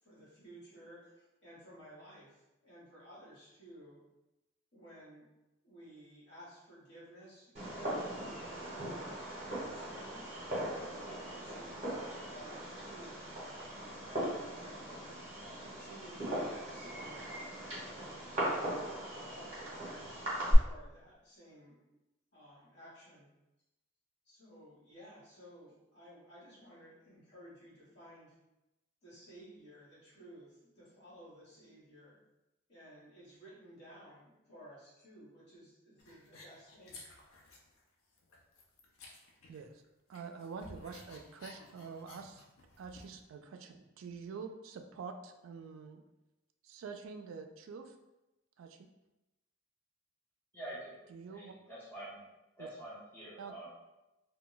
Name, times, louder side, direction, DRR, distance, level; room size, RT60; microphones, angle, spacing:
voice 1, 0.0-4.0 4.7-5.3 5.6-9.2 9.7-13.3 13.9-15.1 15.6-17.3 17.7-18.2 19.0-20.2 20.6-22.0 22.3-23.3 24.2-28.3 29.0-32.2 32.7-37.0, equal, 50° left, -8 dB, 1.2 m, -55 dB
Fireworks, 7.5-20.5, right 1 dB, 30° right, 1.0 m, -38 dB
sound 1, 36.0-37.8 38.1-39.8 40.1-43.2, left 2 dB, 80° left, 0.5 m, -55 dB
voice 2, 39.5-39.8 40.1-42.4 42.8-46.0 46.6-48.0 48.6-48.9 51.1-51.5 52.6-52.7 53.4-53.6, right 5 dB, 75° right, 6 dB, 0.3 m, -46 dB
voice 3, 50.5-50.9 51.3-52.2 52.6-53.7, right 1 dB, 10° left, -8 dB, 0.8 m, -46 dB
2.2 x 2.2 x 3.8 m, 0.98 s
head